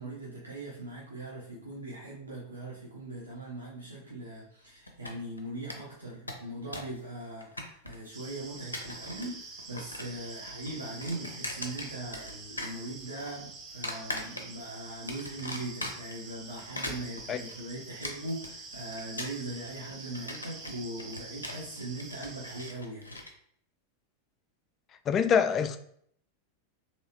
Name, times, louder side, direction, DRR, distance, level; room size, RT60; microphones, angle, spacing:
voice 1, 0.0-23.1, right 2 dB, 75° right, 0.8 m, -40 dB
sound 1, 4.9-5.4 5.7-5.8 6.1-7.0 7.2-8.1 8.6-9.3 9.6-10.2 10.5-12.3 12.6-13.3 13.8-14.7 15.1-16.2 16.6-23.3, left 1 dB, 80° left, 0.5 m, -40 dB
sound 2, 8.1-22.7, right 3 dB, 30° right, 0.7 m, -46 dB
voice 2, 25.1-25.8, left 7 dB, 30° left, 0.3 m, -25 dB
3.1 x 2.9 x 2.9 m
figure-of-eight pair, 90°, 0 cm